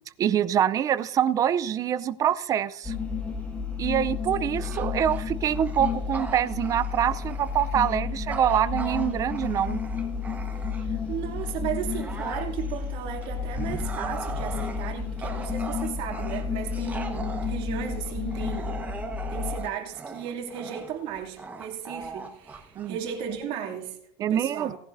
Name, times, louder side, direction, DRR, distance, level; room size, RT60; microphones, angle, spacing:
voice 1, 0.2-2.9 3.8-9.8 22.8-23.0 24.2-24.7, right 10 dB, 30° right, 0.5 m, -25 dB
sound 1, 2.8-19.6, left 6 dB, 10° left, 1.7 m, -32 dB
Bark / Growling, 4.5-11.1 11.5-23.4, right 4 dB, 15° right, 1.2 m, -39 dB
voice 2, 4.7-5.0 10.8-19.0 19.3-24.8, right 9 dB, 55° right, 2.7 m, -35 dB
18.5 x 10.5 x 2.6 m
cardioid pair, 150°, 11 cm